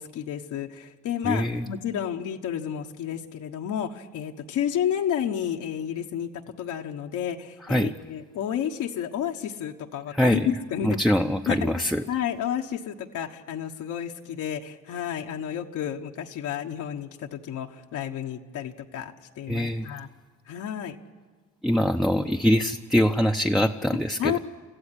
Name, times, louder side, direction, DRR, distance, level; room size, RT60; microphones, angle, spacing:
voice 1, 0.0-6.3 6.6-11.0 11.5-11.7 12.1-20.1 20.5-21.0 24.2-24.4, left 9 dB, 85° left, 2 dB, 1.3 m, -31 dB
voice 2, 1.2-1.6 7.7-7.9 10.1-10.5 10.8-12.0 19.5-19.9 21.6-24.4, equal, ahead, 3 dB, 0.7 m, -23 dB
25.0 x 15.0 x 10.0 m, 1.4 s
cardioid pair, 90°, 30 cm